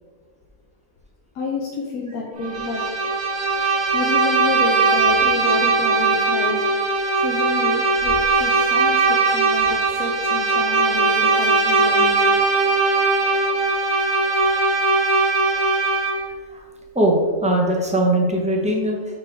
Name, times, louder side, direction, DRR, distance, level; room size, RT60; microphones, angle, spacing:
voice 1, 1.3-2.8 3.9-6.6 7.2-12.4, left 3 dB, 90° left, -2 dB, 1.2 m, -29 dB
Bowed string instrument, 2.4-16.3, right 3 dB, 65° right, 1.6 m, -19 dB
voice 2, 16.9-19.0, right 1 dB, 5° right, -1 dB, 0.6 m, -20 dB
6.7 x 4.3 x 3.4 m, 1.5 s
omnidirectional pair, 1.5 m